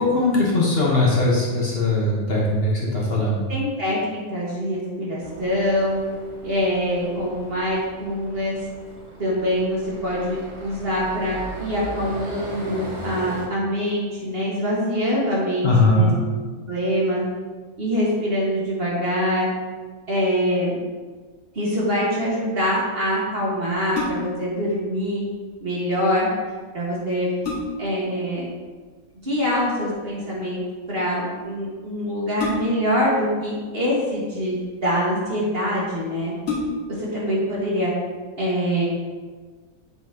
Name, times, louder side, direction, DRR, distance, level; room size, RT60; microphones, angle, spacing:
voice 1, 0.0-3.4 15.6-16.2, left 2 dB, 45° left, -4 dB, 1.4 m, -20 dB
voice 2, 3.5-6.0 6.4-8.6 9.2-16.1 16.7-17.2 17.8-19.5 20.1-20.8 21.5-25.2 25.6-26.3 26.7-27.3 27.8-28.5 29.2-30.6 30.9-36.3 36.9-37.9 38.4-38.9, equal, 45° right, -6 dB, 1.9 m, -24 dB
sound 1, 5.2-13.5, equal, 25° right, 0.8 m, -38 dB
sound 2, 23.9-24.5 26.5-26.6 27.1-28.0 29.6-29.9 32.4-33.0 34.0-34.7 35.4-35.5 35.8-35.9 36.4-37.1 37.6-37.7, left 3 dB, 70° left, 2.2 m, -29 dB
7.7 x 5.7 x 2.9 m, 1.4 s
omnidirectional pair, 1.5 m